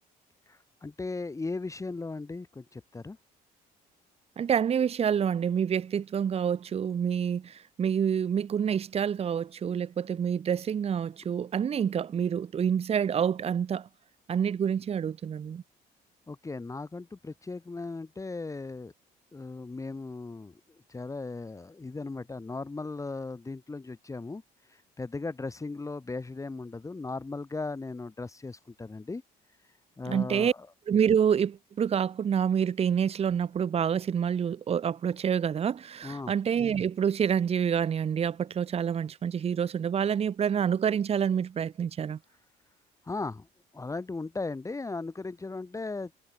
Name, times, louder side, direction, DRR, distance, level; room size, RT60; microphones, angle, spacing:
voice 1, 0.5-3.2 16.3-18.9 19.3-20.5 20.9-24.4 24.7-29.2 30.0-30.7 36.0-36.3 43.0-43.5 43.7-46.1, left 3 dB, 20° left, 4.7 m, -37 dB
voice 2, 4.4-13.9 14.3-15.6 30.1-30.5 30.9-42.2, right 8 dB, 35° right, 1.0 m, -27 dB
cardioid pair, 110°, 17 cm